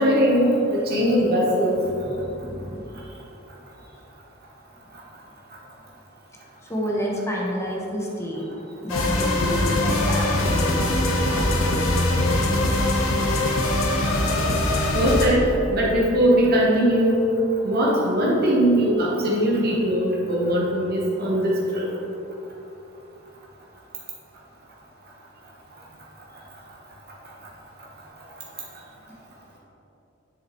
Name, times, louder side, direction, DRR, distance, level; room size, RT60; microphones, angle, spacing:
voice 1, 0.0-1.8 14.9-17.2 17.6-21.8, equal, 50° right, -4 dB, 1.1 m, -20 dB
voice 2, 1.8-3.1 6.6-8.5 8.8-11.0 11.3-12.2 26.3-26.4, equal, 15° left, -3 dB, 1.0 m, -31 dB
sound 1, 8.9-15.3, left 1 dB, 85° left, 1.0 m, -22 dB
7.4 x 7.2 x 3.0 m, 3.0 s
head